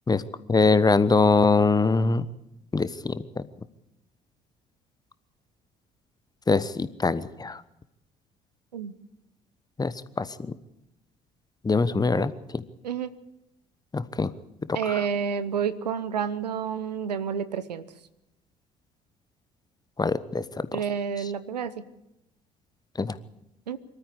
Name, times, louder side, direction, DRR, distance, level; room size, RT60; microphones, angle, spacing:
voice 1, 0.5-2.2 2.7-3.5 6.5-7.6 9.8-10.3 11.6-12.6 13.9-14.3 14.7-15.1 20.0-20.8 21.2-21.3 23.0-23.2, left 3 dB, 20° left, 15 dB, 1.1 m, -23 dB
voice 2, 14.7-17.8 20.7-21.7 23.7-23.8, right 7 dB, 80° right, 15 dB, 0.8 m, -29 dB
24.5 x 13.5 x 8.1 m, 0.86 s
figure-of-eight pair, 50°, 21 cm